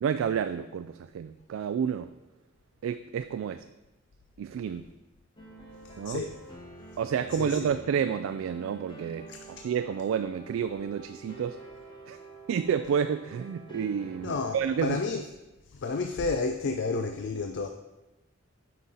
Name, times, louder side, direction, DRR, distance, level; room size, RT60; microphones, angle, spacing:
voice 1, 0.0-2.1 2.8-3.7 4.4-4.9 6.0-6.2 7.0-11.6 12.1-12.2 12.5-15.0, right 7 dB, 90° right, 0.3 m, -30 dB
sound 1, 5.4-14.8, right 2 dB, 25° left, 1.2 m, -48 dB
voice 2, 5.8-6.4 7.3-7.7 9.3-9.5 14.2-15.2 15.7-17.7, left 4 dB, 60° left, 0.5 m, -31 dB
8.4 x 5.6 x 4.0 m
head